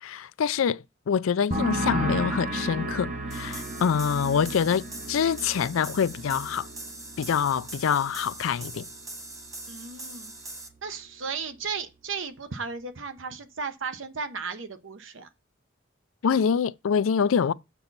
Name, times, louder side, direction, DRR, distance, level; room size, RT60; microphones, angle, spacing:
voice 1, 0.0-6.7 7.2-8.9 16.2-17.5, left 7 dB, 85° left, 0.4 m, -25 dB
sound 1, 1.5-9.0 9.2-9.8, right 1 dB, 40° right, 1.1 m, -34 dB
sound 2, 3.3-10.7, right 2 dB, 15° right, 1.0 m, -42 dB
voice 2, 4.1-4.5 9.7-10.3 10.8-15.3, right 5 dB, 70° right, 1.0 m, -35 dB
7.0 x 6.9 x 4.0 m
head